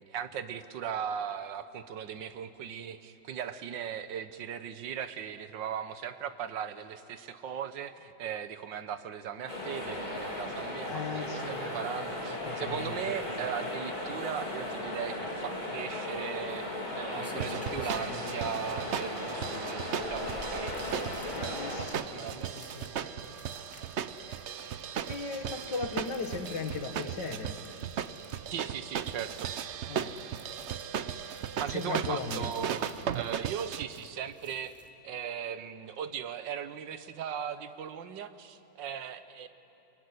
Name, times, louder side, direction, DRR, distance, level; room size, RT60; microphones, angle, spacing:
voice 1, 0.0-21.9 22.1-22.6 28.5-29.5 31.6-32.8 33.1-34.8 35.0-39.5, right 8 dB, 80° right, 11 dB, 1.7 m, -38 dB
sound 1, 9.5-21.8, left 1 dB, 25° left, 3.4 m, -36 dB
voice 2, 10.8-12.1 12.4-13.2 21.3-23.4 24.3-24.4 25.1-27.6 29.9-30.2 31.7-32.5, left 4 dB, 70° left, 6 dB, 2.2 m, -38 dB
sound 2, 16.7-34.9, left 1 dB, 10° left, 1.6 m, -53 dB
sound 3, 17.4-33.8, right 8 dB, 60° right, 0.7 m, -37 dB
23.5 x 22.5 x 9.7 m, 3.0 s
omnidirectional pair, 2.0 m